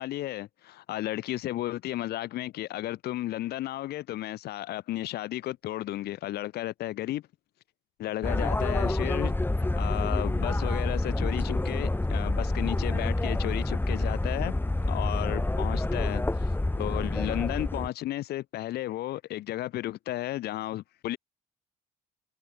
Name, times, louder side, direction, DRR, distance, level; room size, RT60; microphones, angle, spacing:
voice 1, 0.0-7.2 8.0-9.3 9.8-14.5 14.9-16.2 16.8-21.2, left 15 dB, 55° left, 2.1 m, -33 dB
sound 1, 8.2-17.9, left 2 dB, 10° left, 2.0 m, -28 dB
figure-of-eight pair, 50°, 19 cm